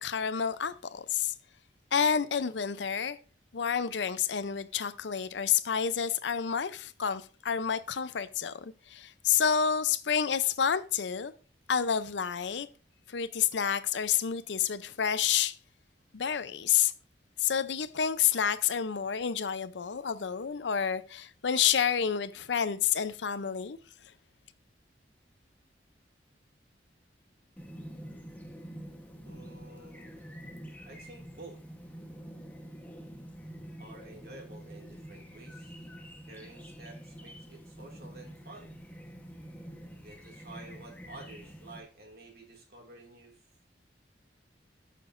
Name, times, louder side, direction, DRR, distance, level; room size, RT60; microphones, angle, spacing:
voice 1, 0.0-1.3 1.9-3.2 3.5-11.3 11.7-12.7 13.1-15.6 16.1-16.9 17.4-23.8, left 8 dB, 75° left, 0.6 m, -29 dB
Chirp tweet, 27.6-41.8, equal, 10° left, 1.1 m, -47 dB
voice 2, 29.2-30.1 30.8-31.6 33.8-35.8 36.3-38.7 40.0-43.4, right 2 dB, 55° right, 2.3 m, -50 dB
14.5 x 6.7 x 2.5 m
head